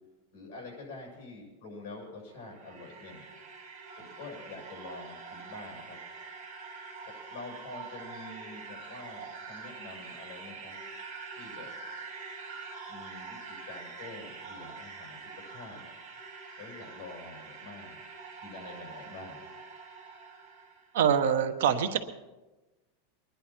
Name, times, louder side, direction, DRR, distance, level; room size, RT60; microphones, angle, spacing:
voice 1, 0.3-3.2 4.0-6.0 7.0-10.8 11.4-11.7 12.9-15.9 16.6-18.0 18.4-19.4, left 3 dB, 40° left, -2 dB, 7.2 m, -46 dB
sound 1, 2.2-20.9, right 4 dB, 40° right, 3.0 m, -45 dB
voice 2, 20.9-22.0, right 8 dB, 75° right, 8 dB, 1.1 m, -24 dB
23.5 x 10.5 x 4.5 m, 1.1 s
supercardioid pair, 175°, 0 cm